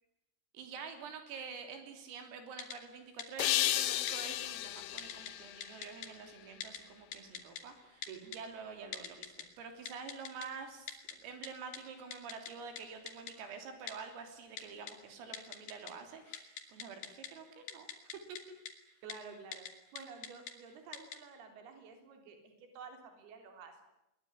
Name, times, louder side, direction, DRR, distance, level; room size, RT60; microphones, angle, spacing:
voice 1, 0.5-17.9, right 5 dB, 85° right, 6 dB, 5.9 m, -47 dB
Typing, 2.6-2.8 3.2-3.5 4.1-4.2 5.0-5.3 5.6-6.1 6.6-6.8 7.1-7.6 8.0-8.4 8.9-9.4 9.9-10.5 10.9-11.1 11.4-11.5 11.7-11.8 12.1-12.5 12.8-12.9 13.1-13.3 13.9-14.0 14.6-14.9 15.3-15.9 16.2-17.3 17.7-18.4 18.7-18.8 19.1-19.2 19.5-19.7 20.0-20.5 20.9-21.2, left 7 dB, 55° left, 4.2 m, -43 dB
sound 1, 3.4-6.5, left 15 dB, 75° left, 3.3 m, -34 dB
voice 2, 19.0-19.7 19.9-23.9, right 5 dB, 55° right, 5 dB, 5.4 m, -51 dB
21.5 x 21.5 x 9.8 m, 0.89 s
omnidirectional pair, 5.9 m